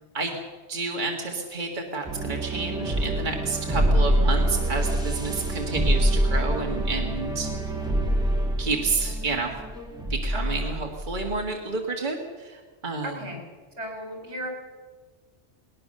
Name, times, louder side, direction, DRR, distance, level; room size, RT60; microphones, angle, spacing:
voice 1, 0.7-7.5 8.6-9.5 10.1-13.2, right 3 dB, 45° right, 1 dB, 2.0 m, -30 dB
sound 1, 2.0-11.5, right 1 dB, 5° right, 2.7 m, -25 dB
voice 2, 10.3-10.8 13.0-13.4 13.8-14.5, right 1 dB, 75° right, 2 dB, 4.8 m, -36 dB
20.0 x 19.5 x 6.7 m, 1.4 s
omnidirectional pair, 1.2 m